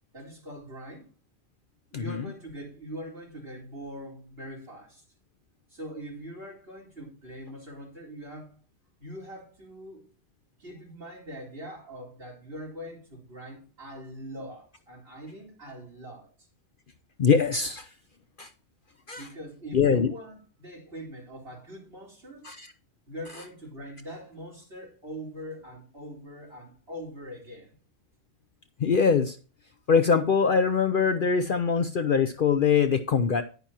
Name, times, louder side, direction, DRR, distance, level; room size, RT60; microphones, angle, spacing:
voice 1, 0.1-1.1 1.9-5.0 5.7-8.6 9.0-10.1 10.6-16.5 19.1-22.5 23.1-27.7, equal, 50° right, 4.3 m, -42 dB
voice 2, 1.9-2.3 17.2-17.9 18.4-18.5 19.1-19.2 19.7-20.1 22.4-22.7 28.8-29.4 29.9-33.4, left 6 dB, 55° left, 0.7 m, -23 dB
10.5 x 9.2 x 2.9 m
omnidirectional pair, 1.3 m